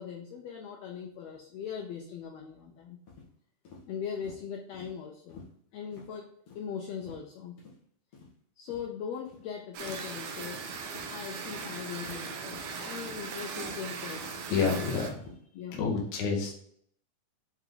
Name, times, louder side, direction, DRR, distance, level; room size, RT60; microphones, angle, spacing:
voice 1, 0.0-3.0 3.9-5.4 5.7-7.6 8.6-10.7 11.0-14.4 15.5-15.8, left 7 dB, 90° left, 3 dB, 1.5 m, -40 dB
sound 1, 3.1-3.3 3.6-3.8 4.2-4.4 4.7-4.9 5.3-5.5 5.9-6.1 6.5-6.6 7.0-7.3 7.6-7.7 8.1-8.3 8.7-8.8 9.3-9.4 9.8-10.0 10.4-10.6 10.9-11.1 11.5-11.6 12.0-12.2 12.5-12.7 13.0-13.2 13.6-13.8 14.1-14.9 15.2-15.4, left 4 dB, 50° left, 2.3 m, -50 dB
sound 2, 9.7-15.1, right 5 dB, 70° right, 1.6 m, -39 dB
voice 2, 14.5-15.2 15.8-16.5, left 5 dB, 65° left, 0 dB, 2.5 m, -28 dB
7.6 x 3.4 x 3.9 m, 0.64 s
omnidirectional pair, 3.7 m